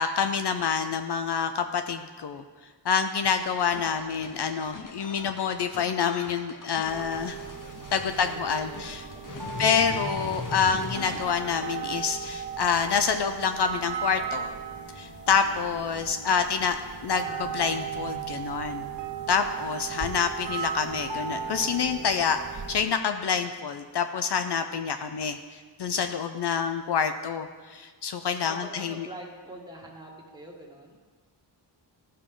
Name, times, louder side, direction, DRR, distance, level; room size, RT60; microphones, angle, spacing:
voice 1, 0.0-2.4 2.8-7.4 7.9-9.0 9.6-14.5 15.0-16.8 17.0-18.9 19.3-22.4 22.7-29.1, left 6 dB, 65° left, 8 dB, 0.6 m, -27 dB
sound 1, 3.2-11.2, left 3 dB, 45° left, 1.0 m, -40 dB
sound 2, 6.8-22.8, right 7 dB, 65° right, 1.5 m, -36 dB
voice 2, 8.2-9.9 15.6-16.5 19.4-19.9 28.4-30.9, right 1 dB, 10° right, -2 dB, 1.8 m, -46 dB
14.5 x 6.5 x 3.8 m, 1.5 s
wide cardioid pair, 100°, 44 cm